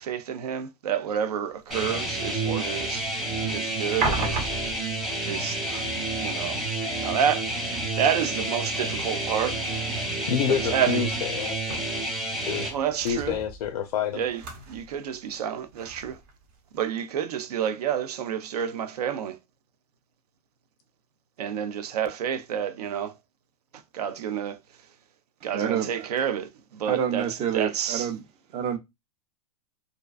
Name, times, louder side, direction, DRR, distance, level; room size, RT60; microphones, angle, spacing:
voice 1, 0.0-3.1 3.4-4.5 5.2-5.8 6.2-6.6 7.0-9.6 10.5-11.1 12.7-13.4 14.1-14.4 14.7-16.2 16.7-19.4 21.4-23.1 23.9-24.6 25.4-27.3 27.5-28.1, right 8 dB, 80° right, 0.5 m, -29 dB
sound 1, 1.5-16.9, right 3 dB, 55° right, 0.9 m, -39 dB
sound 2, 1.7-12.7, right 2 dB, ahead, 0.7 m, -30 dB
voice 2, 10.3-11.8 12.4-12.7 13.0-14.2, left 8 dB, 80° left, 0.4 m, -28 dB
voice 3, 25.5-26.1 26.9-28.2 28.5-28.8, right 8 dB, 30° right, 0.5 m, -28 dB
2.5 x 2.2 x 2.3 m
hypercardioid pair, 120°, 20 cm